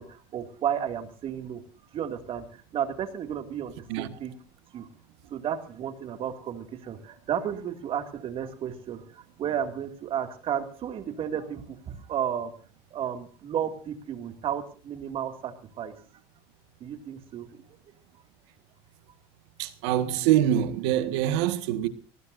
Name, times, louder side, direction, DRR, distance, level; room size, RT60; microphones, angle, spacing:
voice 1, 0.0-1.6 1.9-4.3 4.7-4.9 5.3-12.5 12.9-15.9 16.8-17.6, right 9 dB, 40° right, 2.4 m, -33 dB
voice 2, 19.6-21.9, right 11 dB, 80° right, 1.7 m, -24 dB
21.5 x 19.0 x 2.7 m
supercardioid pair, 130°, 14 cm